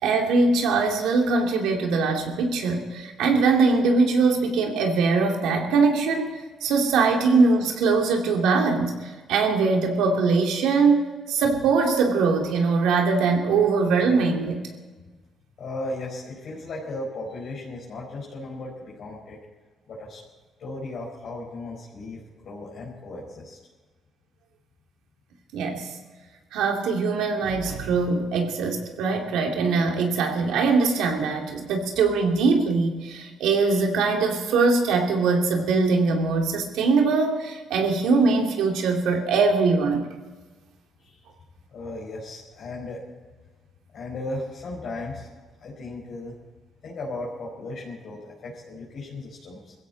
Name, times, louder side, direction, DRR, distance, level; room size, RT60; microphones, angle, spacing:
voice 1, 0.0-14.7 25.5-25.9 26.5-40.1, right 4 dB, 90° right, 2 dB, 2.6 m, -22 dB
voice 2, 15.6-19.4 19.9-20.2 20.6-23.6 41.0-41.2 41.7-43.1 43.9-45.3 45.6-46.3 46.8-49.7, left 2 dB, 65° left, -5 dB, 4.7 m, -36 dB
21.0 x 16.0 x 4.1 m, 1.3 s
cardioid pair, 90°, 0 cm